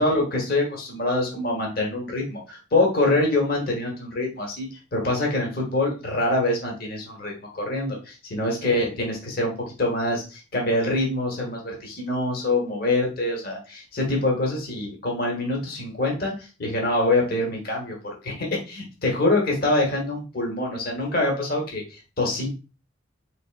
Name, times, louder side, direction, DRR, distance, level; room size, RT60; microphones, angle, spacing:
voice 1, 0.0-9.5 9.8-16.3 16.6-22.5, left 2 dB, 50° left, -1 dB, 1.1 m, -25 dB
3.8 x 3.4 x 2.4 m, 0.32 s
head